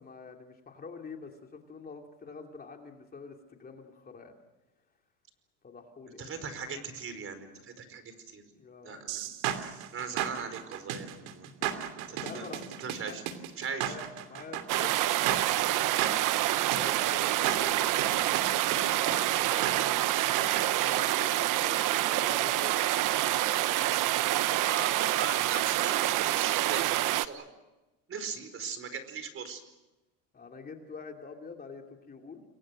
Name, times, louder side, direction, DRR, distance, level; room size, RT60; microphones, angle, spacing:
voice 1, 0.0-4.4 5.6-6.3 8.5-9.3 11.2-11.3 11.6-11.7 12.1-12.6 13.1-13.2 13.7-16.0 16.7-20.3 20.8-22.8 30.3-32.4, left 4 dB, 25° left, 3 dB, 2.9 m, -46 dB
voice 2, 6.2-8.4 8.8-9.2 9.6-11.5 12.0-12.5 12.8-13.2 13.6-13.9 24.6-27.5 28.1-29.6, right 6 dB, 35° right, 10 dB, 4.8 m, -39 dB
sound 1, 9.1-20.7, right 11 dB, 80° right, 2.8 m, -35 dB
sound 2, 14.7-27.3, right 15 dB, 55° right, 1.1 m, -27 dB
29.5 x 22.5 x 6.5 m, 1.0 s
cardioid pair, 130°, 38 cm